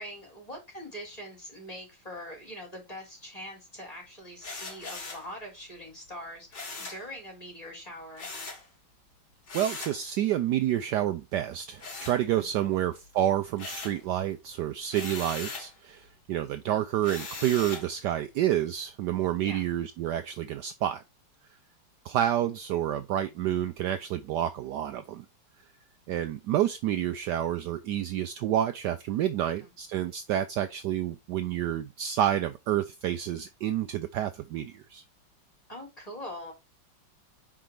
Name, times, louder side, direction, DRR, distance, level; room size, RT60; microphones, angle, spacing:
voice 1, 0.0-8.3 12.4-12.8 19.4-19.6 29.4-29.7 35.7-36.5, equal, 20° left, 3.6 m, -43 dB
sound 1, 4.4-5.3 6.5-7.1 8.2-8.7 9.5-10.0 11.8-12.7 13.0-14.0 14.9-15.7 17.0-17.9, left 3 dB, 60° left, 2.6 m, -39 dB
voice 2, 9.5-21.0 22.0-25.2 26.1-35.0, right 11 dB, 75° right, 1.1 m, -29 dB
5.7 x 5.0 x 4.8 m
omnidirectional pair, 2.1 m